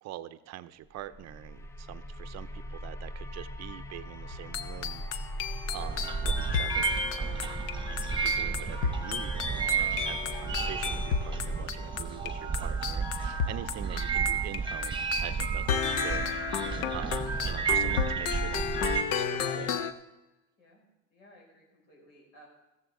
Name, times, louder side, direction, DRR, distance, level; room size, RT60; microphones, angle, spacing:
voice 1, 0.0-5.0 5.7-7.6 7.9-16.2 16.7-19.9, right 13 dB, 45° right, 12 dB, 0.7 m, -44 dB
sound 1, 1.0-11.7, equal, 5° left, 0.5 m, -40 dB
sound 2, 4.3-14.6 14.8-19.9, left 6 dB, 65° left, 1.0 m, -33 dB
sound 3, 5.8-19.0, right 6 dB, 15° right, 1.1 m, -32 dB
voice 2, 20.6-22.5, equal, 80° left, -2 dB, 6.0 m, -58 dB
15.0 x 14.0 x 3.7 m, 1.0 s
supercardioid pair, 100°, 37 cm